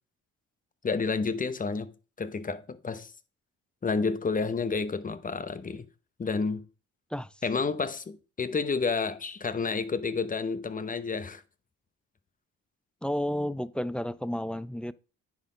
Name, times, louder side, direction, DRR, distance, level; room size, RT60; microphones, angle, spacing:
voice 1, 0.8-1.9 2.2-3.1 3.8-5.9 6.2-6.6 7.4-11.4, left 4 dB, 25° left, 0.9 m, -30 dB
voice 2, 13.0-14.9, left 1 dB, 5° left, 0.4 m, -31 dB
9.9 x 4.4 x 5.0 m
cardioid pair, 90°, 30 cm